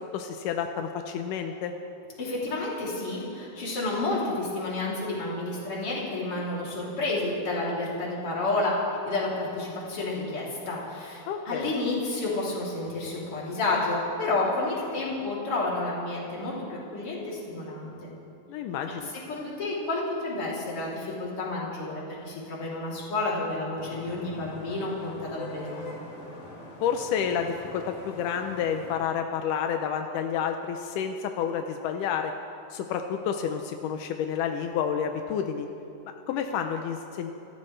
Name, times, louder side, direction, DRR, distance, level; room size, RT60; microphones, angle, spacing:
voice 1, 0.0-1.7 11.3-11.7 18.5-19.1 26.8-32.3 32.7-35.7 36.1-37.3, left 7 dB, 80° left, 5 dB, 1.9 m, -30 dB
voice 2, 2.2-8.8 9.1-18.1 19.3-25.8, left 2 dB, 40° left, -6 dB, 3.6 m, -30 dB
Vehicle horn car horn honking / Traffic noise roadway noise, 23.8-29.0, left 2 dB, 60° left, 4.3 m, -43 dB
27.5 x 13.5 x 3.3 m, 2.9 s
omnidirectional pair, 4.4 m